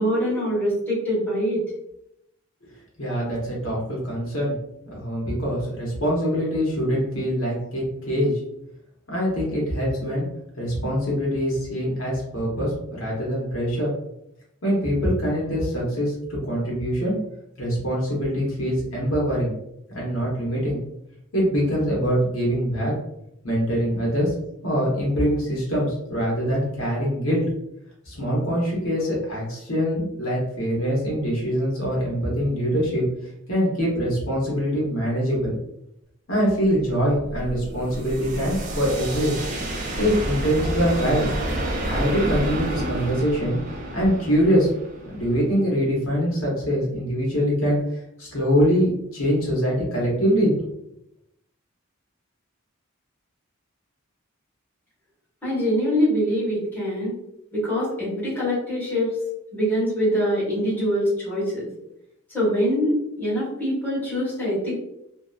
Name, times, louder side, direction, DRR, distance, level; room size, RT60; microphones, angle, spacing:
voice 1, 0.0-1.6 55.4-57.2 57.5-59.2 59.5-61.7 62.3-64.8, equal, 10° left, -9 dB, 1.3 m, -24 dB
voice 2, 3.0-4.5 4.9-8.3 9.1-10.2 10.6-13.9 14.6-16.1 16.4-17.2 17.6-19.5 19.9-20.8 21.3-22.9 23.4-24.3 24.6-27.4 28.1-33.0 33.5-35.5 36.3-39.3 40.0-41.2 41.9-43.6 43.9-44.7 45.1-47.8 48.2-50.5, equal, 65° left, -5 dB, 0.9 m, -23 dB
sound 1, 36.6-45.6, right 1 dB, 35° right, 0.4 m, -29 dB
2.7 x 2.0 x 2.3 m, 0.80 s
head